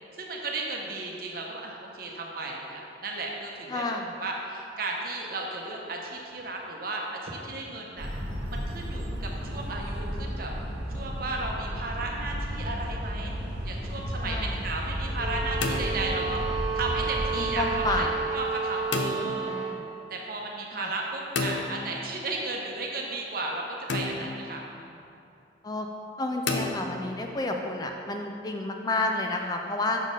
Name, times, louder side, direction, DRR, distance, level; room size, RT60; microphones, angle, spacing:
voice 1, 0.2-3.8 4.2-8.1 8.5-10.5 10.9-13.3 13.6-16.4 16.7-19.5 20.1-23.6 23.9-25.0, right 2 dB, 50° right, -1 dB, 0.8 m, -34 dB
voice 2, 3.7-4.1 14.2-14.6 17.3-18.4 19.4-19.9 20.7-20.9 25.6-25.9 26.2-30.0, left 2 dB, 20° left, 3 dB, 0.3 m, -30 dB
sound 1, 8.0-18.0, equal, 80° right, 1.1 m, -33 dB
sound 2, 12.2-12.8 15.3-16.6 18.9-19.5 21.4-22.3 23.9-24.6 26.5-27.3, left 3 dB, 75° left, 0.6 m, -32 dB
sound 3, 15.1-19.8, right 5 dB, 35° right, 1.4 m, -32 dB
6.4 x 4.2 x 5.1 m, 2.7 s
head